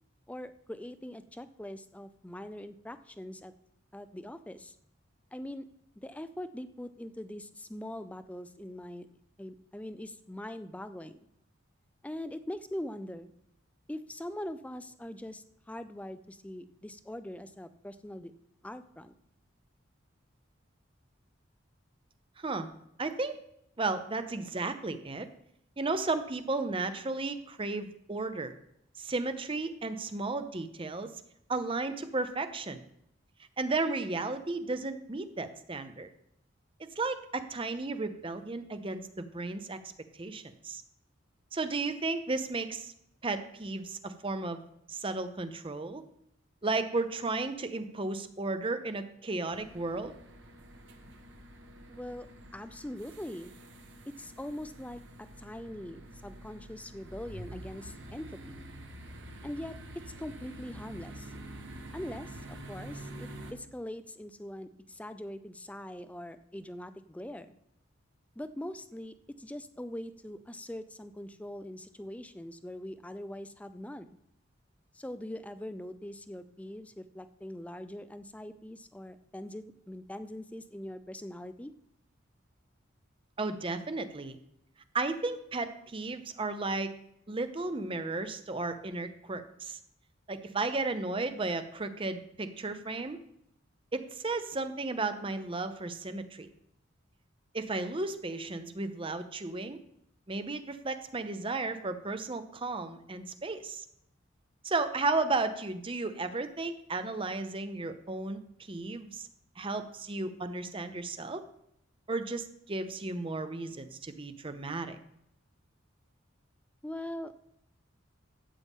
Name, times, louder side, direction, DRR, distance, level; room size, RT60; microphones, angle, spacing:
voice 1, 0.3-3.5 3.9-4.8 5.3-5.7 6.0-9.1 9.4-11.3 12.0-13.3 13.9-18.3 18.6-19.1 51.9-52.3 52.5-53.5 54.2-58.6 59.4-59.8 60.2-61.3 61.9-67.5 68.4-74.1 74.9-81.7 116.8-117.4, left 1 dB, 5° left, 11 dB, 0.4 m, -42 dB
voice 2, 22.4-22.7 23.0-23.4 23.8-25.3 25.8-28.5 29.0-31.1 31.5-32.8 33.6-36.1 37.0-39.8 40.2-40.8 41.5-42.9 43.2-44.6 44.9-46.0 46.6-50.1 83.4-84.4 84.9-86.9 87.3-89.8 90.3-93.2 93.9-96.5 97.5-99.8 100.3-103.9 104.6-109.3 109.6-111.4 112.1-115.0, right 3 dB, 25° right, 10 dB, 0.7 m, -34 dB
sound 1, 49.5-63.5, right 1 dB, 60° right, 1.4 m, -47 dB
12.0 x 8.6 x 3.6 m, 0.74 s
head